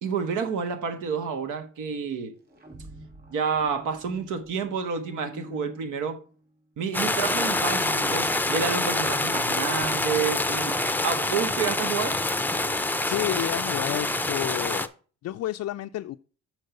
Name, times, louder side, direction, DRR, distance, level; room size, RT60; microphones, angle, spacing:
voice 1, 0.0-2.3 3.3-6.2 6.8-12.2, right 6 dB, 85° right, 1.3 m, -29 dB
sound 1, 2.3-6.6, right 1 dB, 30° right, 2.2 m, -46 dB
sound 2, 6.9-14.9, left 2 dB, 5° left, 0.5 m, -26 dB
voice 2, 13.1-14.9 15.2-16.2, left 13 dB, 60° left, 0.4 m, -30 dB
6.5 x 4.6 x 6.6 m
cardioid pair, 90°, 30 cm